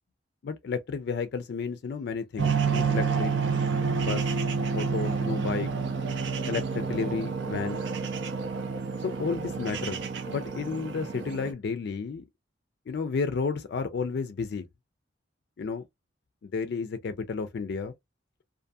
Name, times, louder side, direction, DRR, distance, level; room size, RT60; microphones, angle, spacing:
voice 1, 0.4-3.3 3.9-4.4 4.7-5.7 6.5-7.8 9.0-10.0 10.3-12.2 12.9-14.6 15.6-15.8 16.4-17.9, left 5 dB, 60° left, 0.3 m, -32 dB
sound 1, 2.4-11.5, right 5 dB, 65° right, 0.5 m, -29 dB
2.6 x 2.5 x 2.3 m
head